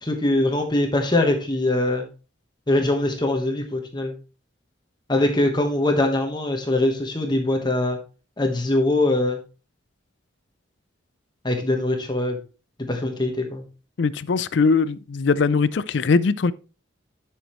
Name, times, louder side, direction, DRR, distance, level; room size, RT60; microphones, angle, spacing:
voice 1, 0.0-2.1 2.7-4.1 5.1-8.0 8.4-9.4 11.4-12.4 12.9-13.6, left 1 dB, 20° left, 1.3 m, -22 dB
voice 2, 14.0-16.5, left 4 dB, 65° left, 0.4 m, -21 dB
11.0 x 6.4 x 3.1 m
head